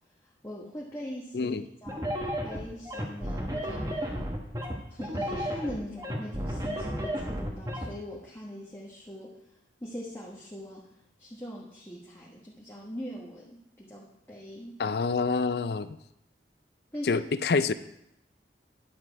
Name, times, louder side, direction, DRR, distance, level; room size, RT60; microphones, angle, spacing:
voice 1, 0.2-2.0 2.4-4.2 4.9-9.5 9.8-10.9 11.2-14.8 16.9-17.2, equal, 15° left, -5 dB, 1.2 m, -41 dB
sound 1, 1.9-7.9, equal, 20° right, 1.4 m, -32 dB
voice 2, 14.8-16.0 17.0-17.7, left 4 dB, 65° left, 13 dB, 0.5 m, -27 dB
10.5 x 7.6 x 4.6 m, 0.80 s
head